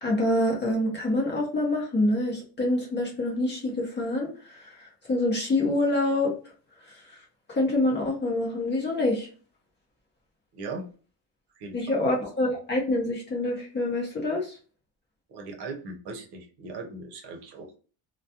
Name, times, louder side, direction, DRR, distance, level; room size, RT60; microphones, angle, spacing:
voice 1, 0.0-6.3 6.9-7.0 7.5-9.3 11.7-14.6, left 2 dB, 25° left, -2 dB, 0.7 m, -26 dB
voice 2, 10.5-10.8 11.6-12.0 15.3-17.8, right 3 dB, 65° right, 3 dB, 0.8 m, -39 dB
2.3 x 2.1 x 2.7 m, 0.38 s
cardioid pair, 170°, 43 cm